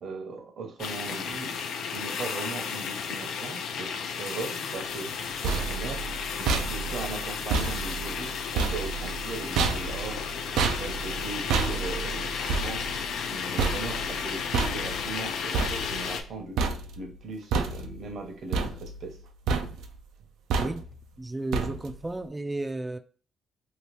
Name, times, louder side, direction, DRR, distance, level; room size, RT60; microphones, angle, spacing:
voice 1, 0.0-5.1 5.4-6.0 6.4-10.2 10.8-12.8 13.3-16.6 17.0-19.2, right 3 dB, 60° right, 0.9 m, -38 dB
sound 1, 0.8-16.2, left 6 dB, 75° left, 0.4 m, -33 dB
sound 2, 5.1-16.3 16.6-17.2 17.5-18.2 18.5-19.2 19.5-20.0 20.5-21.0 21.5-22.1, right 4 dB, 85° right, 0.4 m, -30 dB
voice 2, 20.6-20.9 21.2-23.0, right 2 dB, 15° right, 0.4 m, -33 dB
2.9 x 2.3 x 3.2 m
cardioid pair, 90°, 0 cm